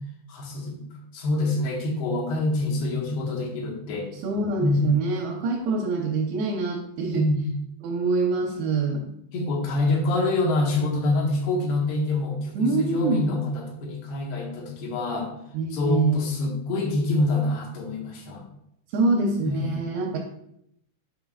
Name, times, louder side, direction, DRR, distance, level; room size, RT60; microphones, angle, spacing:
voice 1, 0.3-4.1 4.6-4.9 7.1-7.4 9.3-15.3 15.7-18.4 19.4-19.9, left 2 dB, 85° left, 0 dB, 3.1 m, -26 dB
voice 2, 4.1-7.3 7.8-9.1 12.6-13.3 15.5-16.2 18.9-20.2, right 3 dB, 90° right, -3 dB, 2.9 m, -25 dB
7.4 x 5.7 x 2.4 m, 0.76 s
omnidirectional pair, 4.5 m